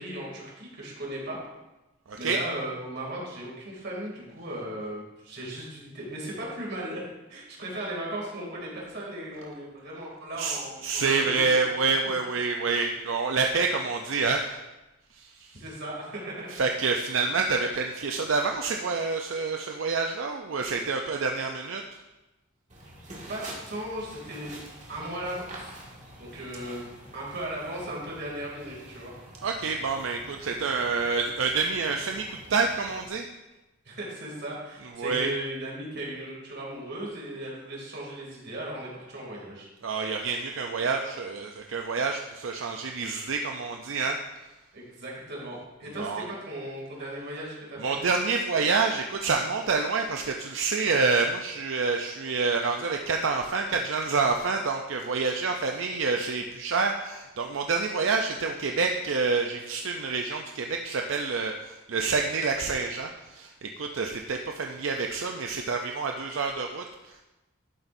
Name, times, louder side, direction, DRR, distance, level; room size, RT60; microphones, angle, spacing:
voice 1, 0.0-1.5 2.2-7.0 7.3-11.4 15.5-16.6 23.3-24.6 24.9-25.8 26.2-26.9 27.1-29.1 33.8-39.7 44.7-47.9, right 1 dB, 60° right, -3 dB, 2.7 m, -37 dB
voice 2, 2.1-2.4 10.4-14.6 15.1-15.6 16.5-21.8 29.4-33.3 35.0-35.3 39.8-44.2 46.0-46.3 47.8-67.2, right 4 dB, 75° right, 3 dB, 0.6 m, -28 dB
sound 1, 22.7-33.1, right 1 dB, 40° right, 1.9 m, -47 dB
11.5 x 8.0 x 2.7 m, 1.0 s
head